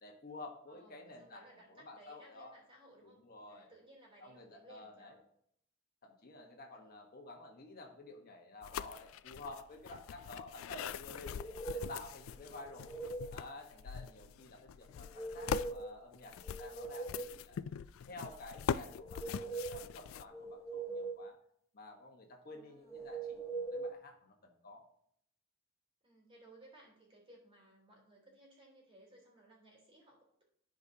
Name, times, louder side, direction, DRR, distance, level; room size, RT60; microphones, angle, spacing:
voice 1, 0.0-1.4 1.7-2.5 3.0-3.7 4.2-5.2 6.0-11.3 11.7-12.9 13.3-17.6 18.1-21.4 21.7-24.8, left 2 dB, 50° left, 1 dB, 1.3 m, -51 dB
voice 2, 0.7-5.2 6.7-6.9 11.6-11.9 12.3-12.4 14.1-14.2 22.4-23.2 26.0-30.4, right 1 dB, 30° right, -2 dB, 3.5 m, -61 dB
Cardboard Sound Effects, 8.6-20.2, left 8 dB, 85° left, 0.3 m, -42 dB
sound 1, 11.2-12.0 12.5-13.4 15.0-16.0 16.3-17.4 18.8-19.9 20.3-21.3 22.9-23.9, right 3 dB, 15° left, 0.7 m, -42 dB
14.5 x 5.0 x 2.8 m, 0.70 s
head